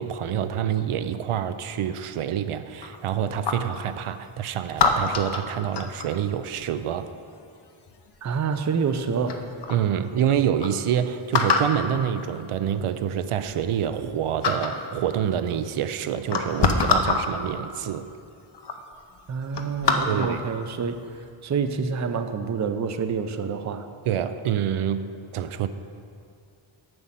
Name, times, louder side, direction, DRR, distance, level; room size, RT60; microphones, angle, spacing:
voice 1, 0.0-7.1 9.7-18.1 20.1-20.4 24.1-25.7, right 9 dB, 80° right, 11 dB, 0.5 m, -27 dB
sound 1, 2.8-3.8 4.8-6.2 7.9-8.3 8.9-9.0 9.3-9.8 10.3-10.4 10.6-10.7 11.3-11.8 12.8-12.9 13.3-14.1 14.4-14.8 15.7-15.8 16.2-17.3 18.1-18.2 18.5-18.8 19.2-20.4 20.9-21.2, left 4 dB, 55° left, 0.8 m, -25 dB
voice 2, 8.2-9.4 19.3-21.0 21.4-23.9, right 5 dB, 35° right, 8 dB, 0.5 m, -27 dB
7.8 x 5.3 x 7.4 m, 2.4 s
wide cardioid pair, 115°, 50 cm